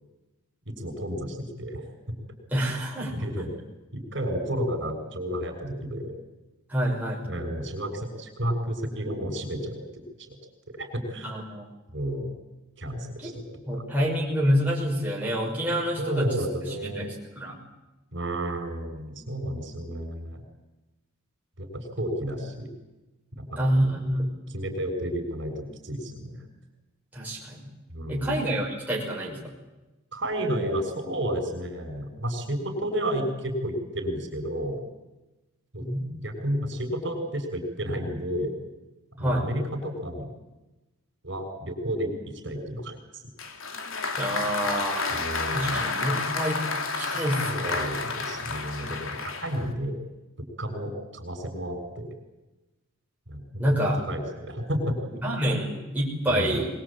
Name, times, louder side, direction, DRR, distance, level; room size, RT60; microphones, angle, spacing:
voice 1, 0.7-2.2 3.1-3.5 3.9-6.1 7.2-10.4 10.8-11.3 11.9-12.3 12.8-13.4 13.7-13.8 16.0-17.1 18.1-20.4 21.6-22.7 23.4-23.9 24.5-26.4 27.9-28.4 30.1-34.8 35.7-35.8 36.2-38.6 39.2-40.3 41.2-43.0 45.1-45.8 47.1-50.0 50.6-52.1 53.3-53.7 54.1-55.2 56.3-56.6, equal, 55° right, 6 dB, 6.6 m, -31 dB
voice 2, 2.5-3.2 6.7-7.3 11.2-11.7 13.2-13.3 13.7-17.6 23.6-24.2 27.1-27.7 28.1-29.5 35.8-36.1 39.2-39.5 44.2-45.1 45.5-46.7 47.0-47.9 53.6-54.0 55.2-56.7, equal, 5° right, -4 dB, 5.8 m, -27 dB
Applause, 43.4-49.7, left 4 dB, 70° left, 3.0 m, -30 dB
23.5 x 22.0 x 8.9 m, 1.1 s
head